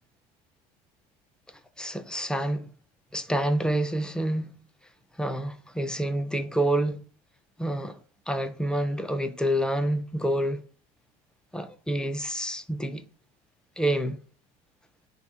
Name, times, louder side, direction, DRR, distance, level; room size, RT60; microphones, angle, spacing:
voice 1, 1.8-2.7 3.1-4.5 5.2-7.0 7.6-8.0 8.3-10.6 11.5-13.1 13.8-14.2, right 1 dB, 5° left, 0.3 m, -28 dB
4.8 x 2.8 x 3.5 m
cardioid pair, 130°, 20 cm